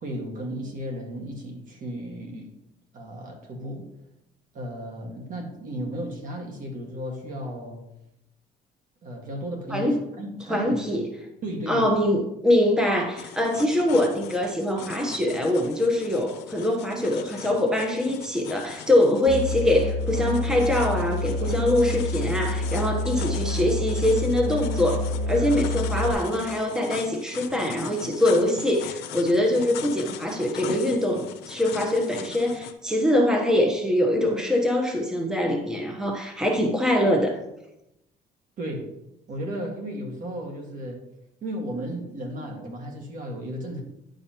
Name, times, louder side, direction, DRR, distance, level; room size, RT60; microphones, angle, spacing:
voice 1, 0.0-2.5 2.9-3.9 4.5-7.8 9.0-11.0 11.4-11.9 38.6-38.9 39.3-41.0 41.4-43.8, equal, 50° right, 2 dB, 1.8 m, -34 dB
voice 2, 10.5-11.0 11.7-37.4, left 1 dB, 5° right, 1 dB, 1.0 m, -23 dB
sound 1, 13.2-32.7, left 10 dB, 85° left, 0.6 m, -40 dB
Musical instrument, 19.3-26.1, left 2 dB, 70° right, 1.8 m, -28 dB
10.5 x 5.2 x 2.9 m, 0.87 s
cardioid pair, 110°, 17 cm